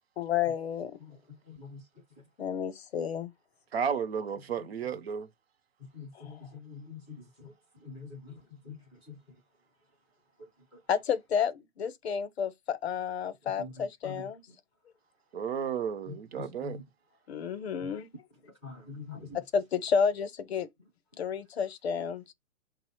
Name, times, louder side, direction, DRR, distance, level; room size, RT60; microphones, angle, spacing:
voice 1, 0.2-1.0 2.4-3.3 6.1-6.4 10.9-14.4 17.3-18.1 19.3-20.7 21.2-22.3, left 7 dB, 50° left, 0.7 m, -31 dB
voice 2, 3.7-5.3 15.3-16.8, right 7 dB, 50° right, 0.6 m, -33 dB
voice 3, 6.0-7.2 7.9-8.2 8.7-8.8 14.0-14.2 16.4-16.8 18.6-19.3, left 5 dB, 5° left, 0.4 m, -43 dB
5.3 x 2.0 x 4.3 m
hypercardioid pair, 170°, 39 cm